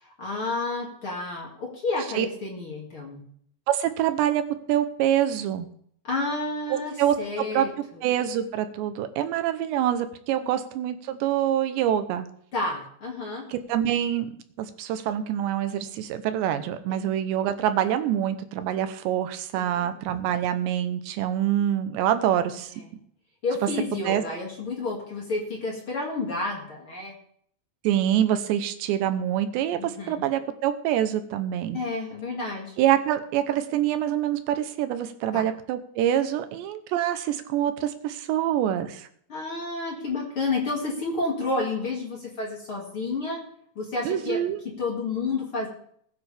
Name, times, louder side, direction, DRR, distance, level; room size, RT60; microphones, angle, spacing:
voice 1, 0.0-3.2 6.0-8.0 10.4-10.5 12.5-13.4 19.8-19.9 23.4-27.1 29.8-30.1 31.7-32.7 35.3-35.4 39.3-43.4 43.8-44.4 44.8-45.7, left 3 dB, 35° left, -2 dB, 2.5 m, -30 dB
voice 2, 3.7-4.4 4.7-5.7 6.7-7.2 7.5-7.7 8.0-12.3 13.5-14.3 14.6-22.7 24.1-24.2 27.8-31.8 32.8-39.1 44.0-44.6, right 11 dB, 85° right, 10 dB, 3.1 m, -25 dB
20.0 x 9.5 x 3.5 m, 0.63 s
omnidirectional pair, 5.0 m